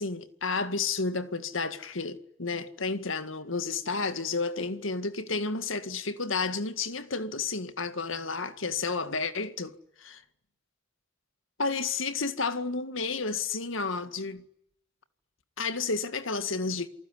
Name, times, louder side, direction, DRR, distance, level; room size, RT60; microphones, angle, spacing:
voice 1, 0.0-10.2 11.6-14.4 15.6-16.9, left 4 dB, 80° left, 1.9 m, -31 dB
28.0 x 19.5 x 10.0 m
head